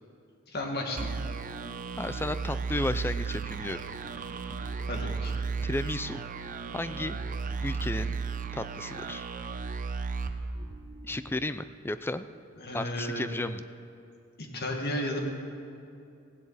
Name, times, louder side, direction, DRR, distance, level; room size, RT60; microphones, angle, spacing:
voice 1, 0.5-1.1 4.9-5.3 12.6-13.3 14.5-15.2, left 1 dB, 50° left, 1 dB, 1.9 m, -33 dB
sound 1, 1.0-11.3, right 5 dB, 40° right, 0.7 m, -34 dB
voice 2, 2.0-3.8 5.6-6.2 6.7-7.2 7.6-8.2 8.5-9.3 11.0-12.2 12.7-13.6, left 2 dB, 10° left, 12 dB, 0.4 m, -33 dB
16.5 x 15.5 x 4.1 m, 2.6 s
head